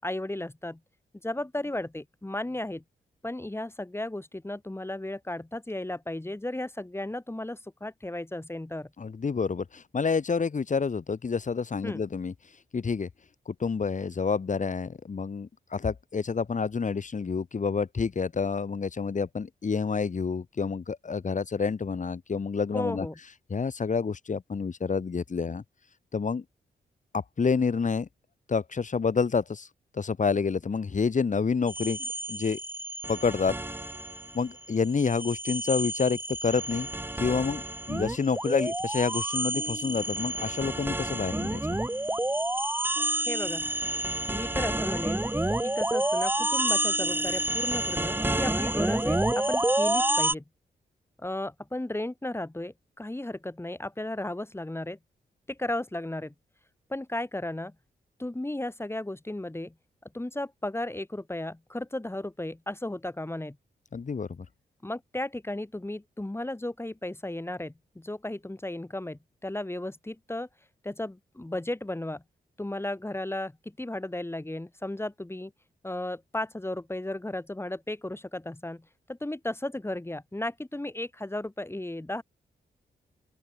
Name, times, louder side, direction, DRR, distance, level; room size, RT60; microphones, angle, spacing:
voice 1, 0.0-0.8 1.2-2.8 3.2-8.9 11.8-12.0 22.7-23.2 43.3-43.7 44.3-45.3 45.6-50.4 51.2-55.0 55.5-56.3 56.9-57.7 58.2-59.7 60.1-63.6 64.8-70.5 70.8-72.2 72.6-75.5 75.8-82.2, left 1 dB, 15° left, 4.7 m, -34 dB
voice 2, 9.0-12.3 12.7-13.1 13.5-23.1 23.5-25.6 26.1-26.4 27.1-28.1 28.5-29.7 29.9-32.6 33.1-33.6 34.3-36.9 37.2-41.8 63.9-64.5, left 5 dB, 45° left, 2.4 m, -28 dB
sound 1, 31.7-34.4 34.7-50.3, right 1 dB, 10° right, 2.6 m, -29 dB
open air
cardioid pair, 65°, 17 cm